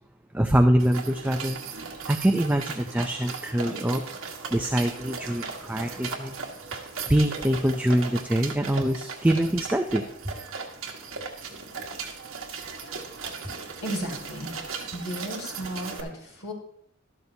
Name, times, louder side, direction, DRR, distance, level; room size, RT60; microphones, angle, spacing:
voice 1, 0.3-1.6 2.1-4.0 4.5-6.4 6.7-10.3, right 1 dB, 10° right, 4 dB, 0.4 m, -24 dB
sound 1, 0.8-16.0, right 5 dB, 65° right, 1.5 m, -37 dB
voice 2, 13.8-14.5 14.9-16.5, equal, 75° left, -4 dB, 5.5 m, -34 dB
12.5 x 12.0 x 2.8 m, 0.73 s
head